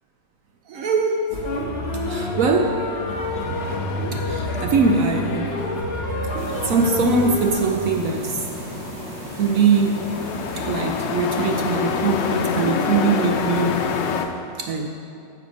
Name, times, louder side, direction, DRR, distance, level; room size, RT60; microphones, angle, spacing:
voice 1, 0.7-1.3 2.0-2.8 4.1-5.7 6.6-8.4 9.3-10.0 10.6-13.9 14.6-14.9, right 4 dB, 65° right, 3 dB, 0.8 m, -21 dB
sound 1, 1.3-7.7, left 1 dB, 40° left, 1.1 m, -27 dB
Truck, 3.1-14.3, left 6 dB, 85° left, 1.3 m, -29 dB
sound 2, 6.4-14.2, right 2 dB, 90° right, 1.7 m, -36 dB
9.9 x 6.9 x 5.3 m, 2.5 s
omnidirectional pair, 1.9 m